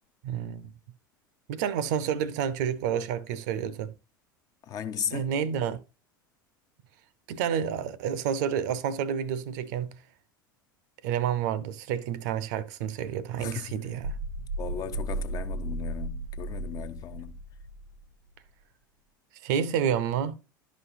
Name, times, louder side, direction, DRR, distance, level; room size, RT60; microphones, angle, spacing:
voice 1, 0.2-0.7 1.5-3.9 5.1-5.8 7.3-10.0 11.0-14.1 19.4-20.4, right 8 dB, 55° right, 0.6 m, -29 dB
voice 2, 4.6-5.3 13.4-13.8 14.6-17.4, left 9 dB, 35° left, 0.5 m, -36 dB
sound 1, 14.0-18.0, right 2 dB, 80° right, 0.9 m, -35 dB
11.0 x 5.1 x 2.6 m
figure-of-eight pair, 80°, 11 cm